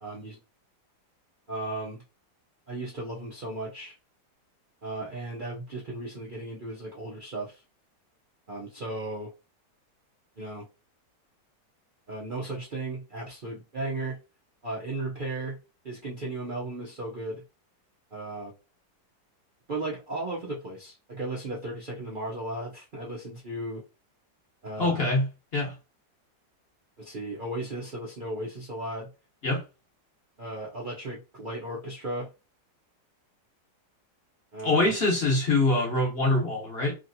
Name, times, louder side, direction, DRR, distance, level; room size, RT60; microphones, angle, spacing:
voice 1, 0.0-0.4 1.5-2.0 2.7-3.9 4.8-7.6 8.5-9.3 10.4-10.6 12.1-14.2 14.6-15.6 15.8-17.4 18.1-18.5 19.7-23.8 24.6-25.1 27.0-29.1 30.4-32.3 34.5-34.9, right 2 dB, 90° right, 0.4 m, -35 dB
voice 2, 24.8-25.7 29.4-29.6 34.6-37.0, left 2 dB, 40° left, 1.0 m, -24 dB
3.0 x 2.8 x 2.6 m
omnidirectional pair, 2.0 m